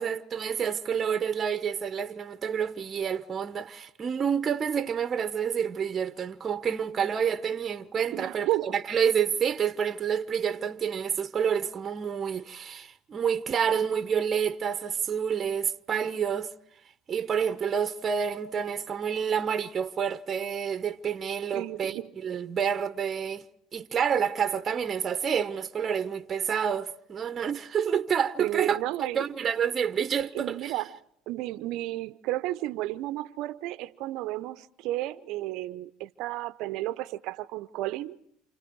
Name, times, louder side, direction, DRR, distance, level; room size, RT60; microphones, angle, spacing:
voice 1, 0.0-16.5 17.1-23.4 23.7-30.7, right 7 dB, 35° right, 1.1 m, -28 dB
voice 2, 8.1-8.8 21.5-22.1 28.4-29.3 30.3-30.9 31.3-38.2, right 16 dB, 65° right, 0.9 m, -32 dB
29.0 x 28.5 x 4.8 m
hypercardioid pair, 70°, 0 cm